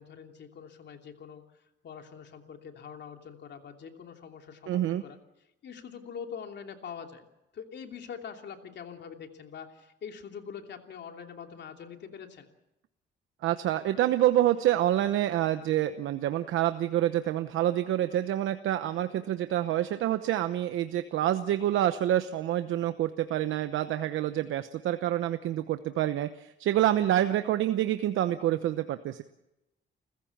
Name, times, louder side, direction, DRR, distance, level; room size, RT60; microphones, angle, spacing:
voice 1, 0.0-1.4 1.8-5.2 5.6-7.3 7.5-12.5, left 7 dB, 60° left, 4 dB, 3.0 m, -44 dB
voice 2, 4.7-5.0 13.4-29.2, right 12 dB, 80° right, 10 dB, 0.9 m, -27 dB
29.5 x 15.0 x 7.3 m, 0.92 s
cardioid pair, 90°, 20 cm